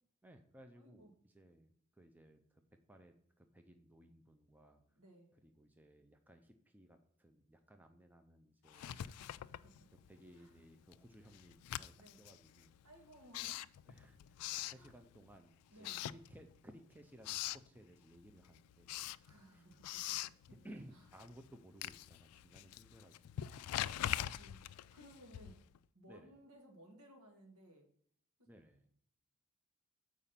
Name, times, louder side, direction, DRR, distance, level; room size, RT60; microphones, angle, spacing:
voice 1, 0.2-2.6 2.9-4.8 5.4-8.9 10.1-12.7 13.9-19.7 20.6-23.5 26.1-26.4 28.5-28.9, right 1 dB, 10° right, 6 dB, 0.5 m, -60 dB
voice 2, 0.7-1.1 5.0-5.3 8.7-9.9 10.3-10.6 11.9-12.2 12.8-13.7 14.7-15.0 15.7-16.0 19.2-20.5 20.9-21.1 24.0-25.6 25.9-27.9, right 1 dB, 85° right, 2 dB, 1.9 m, -61 dB
Writing, 8.7-10.3 10.6-15.4 15.8-16.8 17.0-17.7 18.1-25.8, left 12 dB, 85° left, 0.3 m, -44 dB
6.9 x 4.9 x 5.7 m, 0.64 s
head